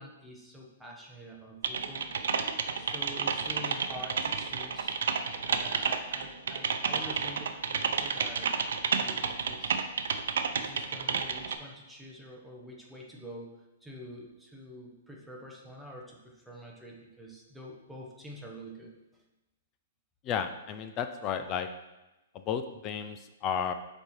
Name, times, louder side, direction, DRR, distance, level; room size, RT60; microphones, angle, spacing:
voice 1, 0.0-2.1 2.8-5.0 5.5-9.9 10.5-18.9, equal, ahead, -2 dB, 1.1 m, -47 dB
Typing, 1.6-11.5, right 6 dB, 75° right, 0.7 m, -31 dB
voice 2, 20.2-21.7 22.3-23.7, left 7 dB, 25° left, 8 dB, 0.4 m, -33 dB
7.6 x 4.3 x 4.8 m, 1.0 s
hypercardioid pair, 160°, 0 cm